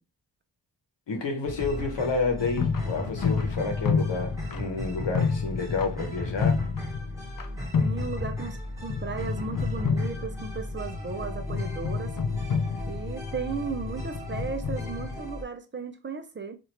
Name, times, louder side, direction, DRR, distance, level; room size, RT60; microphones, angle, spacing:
voice 1, 1.1-6.6, left 4 dB, 70° left, 1.0 m, -30 dB
sound 1, 1.5-15.4, left 1 dB, 5° right, 1.2 m, -37 dB
sound 2, 2.3-7.5 7.7-8.6 8.9-15.2, left 5 dB, 45° left, 0.5 m, -30 dB
voice 2, 7.8-12.2 12.9-16.6, right 5 dB, 25° right, 0.5 m, -35 dB
3.0 x 2.5 x 2.9 m
cardioid pair, 45°, 45 cm